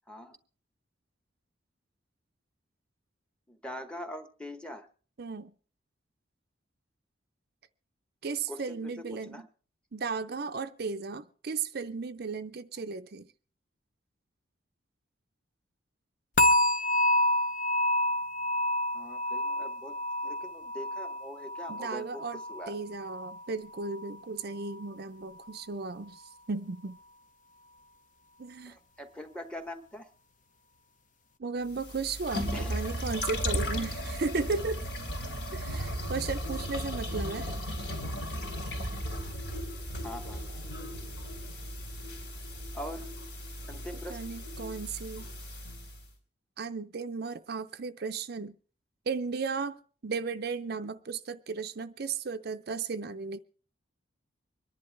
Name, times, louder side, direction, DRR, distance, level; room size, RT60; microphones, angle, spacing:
voice 1, 3.5-4.9 8.5-9.5 18.9-19.9 20.2-22.8 28.7-30.1 32.5-32.8 40.0-40.4 42.7-43.1 43.7-44.2, left 1 dB, 5° left, 1.0 m, -43 dB
voice 2, 5.2-5.5 8.2-9.5 9.9-13.3 21.7-22.4 22.7-26.2 26.5-27.0 28.4-28.8 31.4-34.8 35.5-37.5 44.1-45.3 46.6-48.6 49.1-53.4, right 4 dB, 55° right, 0.5 m, -35 dB
sound 1, 16.4-23.4 23.7-24.1 24.6-24.7, left 1 dB, 40° left, 0.8 m, -29 dB
sound 2, 31.7-46.0, equal, 65° left, 3.3 m, -36 dB
25.0 x 11.0 x 3.3 m
head